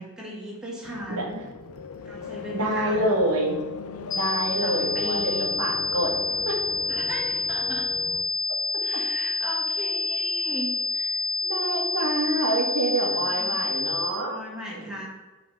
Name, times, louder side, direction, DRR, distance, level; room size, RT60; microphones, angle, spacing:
voice 1, 0.0-1.5 2.0-3.1 4.6-5.5 6.9-7.9 8.8-10.7 12.9-13.6 14.2-15.1, equal, 5° right, -5 dB, 1.8 m, -37 dB
sound 1, 0.8-8.2, left 5 dB, 75° left, 0.7 m, -38 dB
voice 2, 2.5-3.6 4.1-5.3 5.6-6.1 6.5-6.6 11.4-14.4 14.7-14.9, right 2 dB, 85° right, -1 dB, 2.0 m, -26 dB
sound 2, 4.1-14.1, left 3 dB, 40° left, 1.0 m, -28 dB
5.7 x 5.0 x 6.6 m, 1.2 s
head